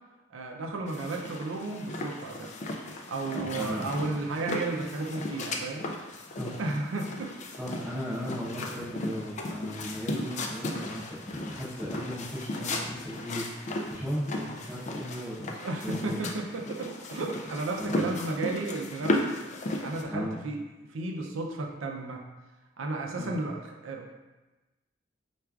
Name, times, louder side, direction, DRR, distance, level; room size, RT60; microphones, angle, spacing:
voice 1, 0.3-2.5 3.1-5.8 6.6-7.3 15.6-19.2 19.8-20.6 20.9-22.2 22.8-24.1, right 2 dB, 85° right, 1 dB, 0.5 m, -33 dB
sound 1, 0.9-20.0, left 2 dB, 40° left, 0.3 m, -36 dB
voice 2, 3.3-4.2 6.4-6.6 7.6-16.2 17.8-18.1 20.1-20.4 23.2-23.4, equal, 10° right, -13 dB, 0.8 m, -36 dB
4.4 x 2.4 x 2.3 m, 1.1 s
head